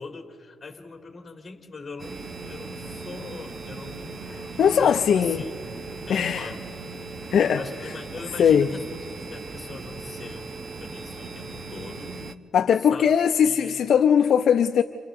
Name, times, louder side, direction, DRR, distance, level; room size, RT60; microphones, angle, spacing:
voice 1, 0.0-2.2 2.5-4.3 4.8-5.6 6.1-6.6 7.5-8.9 9.3-10.5 10.8-12.2 12.8-13.2 13.4-13.8, left 4 dB, 25° left, 3 dB, 2.3 m, -41 dB
sound 1, 2.0-12.3, right 3 dB, 35° right, 0.9 m, -38 dB
voice 2, 4.6-5.4 6.1-6.5 7.3-7.6 8.4-8.7 12.5-14.8, left 8 dB, 60° left, 6 dB, 0.7 m, -19 dB
30.0 x 27.0 x 3.8 m, 2.4 s
cardioid pair, 90°, 0 cm